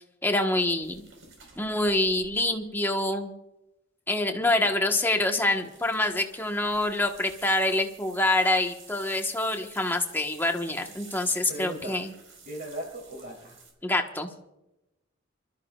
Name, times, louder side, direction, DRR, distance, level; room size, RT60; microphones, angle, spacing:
voice 1, 0.2-1.0 1.6-3.3 4.1-12.1 13.8-14.3, left 2 dB, 10° left, 3 dB, 1.3 m, -26 dB
sound 1, 0.8-3.1 5.4-13.7, right 4 dB, 70° right, 4.5 m, -51 dB
voice 2, 11.5-12.0 12.4-13.6, right 1 dB, 50° right, 0 dB, 3.1 m, -37 dB
27.5 x 13.5 x 2.4 m, 0.92 s
head